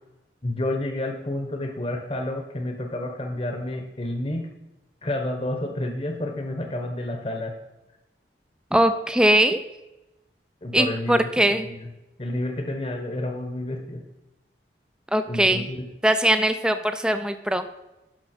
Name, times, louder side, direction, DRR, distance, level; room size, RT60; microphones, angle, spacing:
voice 1, 0.4-4.5 5.0-7.6 10.6-11.9 12.2-14.0 15.3-15.8, left 1 dB, 30° left, 4 dB, 0.9 m, -30 dB
voice 2, 8.7-9.6 10.7-11.7 15.1-15.6 16.0-17.6, right 1 dB, 5° right, 9 dB, 0.4 m, -21 dB
12.5 x 5.6 x 4.3 m, 1.0 s
head